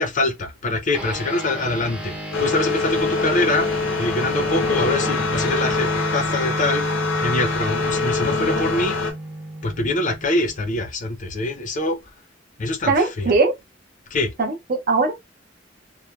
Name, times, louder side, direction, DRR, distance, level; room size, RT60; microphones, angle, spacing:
voice 1, 0.0-3.7 4.0-6.8 7.2-9.0 9.6-12.0 12.6-13.3 14.1-14.3, left 2 dB, 45° left, 0.6 m, -24 dB
sound 1, 0.9-10.7, right 1 dB, 5° right, 0.6 m, -32 dB
sound 2, 2.3-9.1, left 4 dB, 90° left, 0.7 m, -24 dB
voice 2, 12.9-13.5 14.4-15.1, right 3 dB, 50° right, 0.6 m, -20 dB
3.0 x 2.1 x 2.3 m
head